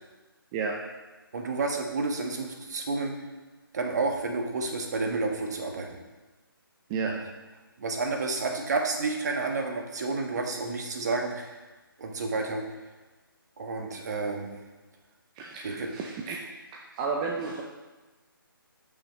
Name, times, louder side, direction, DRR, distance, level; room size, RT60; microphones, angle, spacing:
voice 1, 1.3-3.1 3.7-6.0 7.1-7.2 7.8-11.6 12.0-12.6 13.6-14.5 15.6-15.9, right 3 dB, 45° right, 2 dB, 1.5 m, -30 dB
voice 2, 15.4-16.4 16.7-17.6, right 5 dB, 15° right, -1 dB, 0.5 m, -32 dB
13.0 x 6.1 x 3.2 m, 1.2 s
figure-of-eight pair, 145°, 12 cm